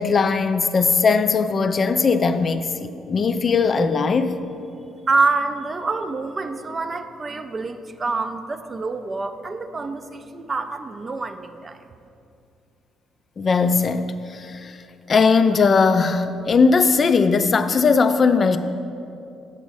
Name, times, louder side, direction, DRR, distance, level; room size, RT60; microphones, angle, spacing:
voice 1, 0.0-4.4 13.4-14.8 15.1-18.6, left 4 dB, 40° left, 10 dB, 0.3 m, -19 dB
voice 2, 5.1-11.8, right 3 dB, 30° right, 9 dB, 0.4 m, -26 dB
7.1 x 4.0 x 6.3 m, 2.6 s
cardioid pair, 95°, 0 cm